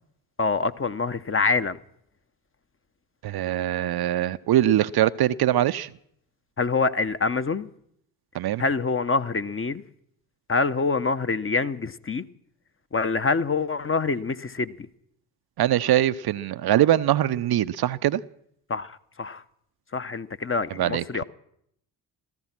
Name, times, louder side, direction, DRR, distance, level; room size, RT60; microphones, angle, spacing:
voice 1, 0.4-1.8 6.6-7.7 8.6-9.8 10.5-12.2 12.9-14.9 18.7-19.4 19.9-21.2, left 4 dB, 25° left, 1.0 m, -25 dB
voice 2, 3.2-5.9 8.3-8.6 15.6-18.2 20.8-21.0, right 12 dB, 50° right, 0.7 m, -22 dB
16.0 x 14.5 x 6.0 m
hypercardioid pair, 45°, 50 cm